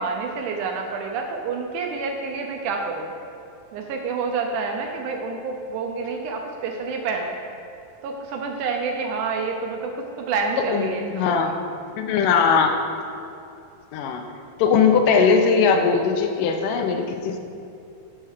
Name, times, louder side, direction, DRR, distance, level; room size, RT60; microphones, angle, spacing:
voice 1, 0.0-3.1 3.7-7.4 8.0-11.3, right 4 dB, 80° right, 3 dB, 1.9 m, -28 dB
voice 2, 10.7-11.6 11.9-12.7 13.9-14.2 14.6-17.4, left 5 dB, 80° left, 5 dB, 2.2 m, -20 dB
6.1 x 5.6 x 6.5 m, 2.6 s
omnidirectional pair, 3.9 m